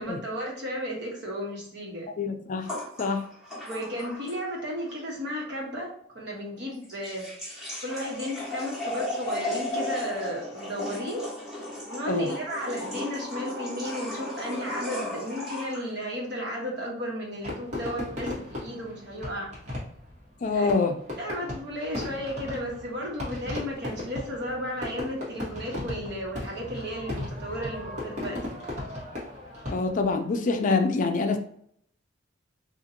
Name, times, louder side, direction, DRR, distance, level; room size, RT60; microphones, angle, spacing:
voice 1, 0.0-2.1 3.6-7.3 7.8-11.3 11.9-19.5 20.5-20.7 21.2-28.7, equal, 65° right, -2 dB, 1.2 m, -34 dB
voice 2, 2.2-2.7 3.0-3.2 12.0-12.3 20.4-21.0 29.7-31.4, left 4 dB, 45° left, 6 dB, 0.4 m, -25 dB
sound 1, 2.6-4.6 4.9-5.0 6.7-15.9, left 1 dB, ahead, 1.2 m, -35 dB
Fireworks, 17.4-30.1, left 1 dB, 40° right, 1.2 m, -37 dB
4.0 x 2.4 x 2.7 m, 0.67 s
head